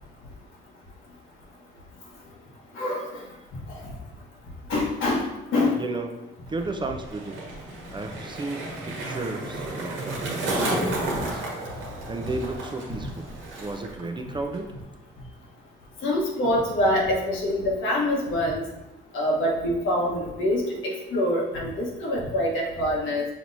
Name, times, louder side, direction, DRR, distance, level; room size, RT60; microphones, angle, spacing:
voice 1, 2.7-3.1 3.7-3.8 4.7-5.2 5.5-5.8 16.0-18.6 19.1-23.2, left 1 dB, 80° left, -2 dB, 1.2 m, -25 dB
voice 2, 5.7-7.6 7.9-14.7, right 3 dB, 25° right, 5 dB, 0.4 m, -34 dB
Skateboard, 6.5-14.0 14.3-14.8, right 1 dB, 85° right, 1.2 m, -32 dB
5.9 x 3.0 x 2.6 m, 0.98 s
cardioid pair, 90°, 20 cm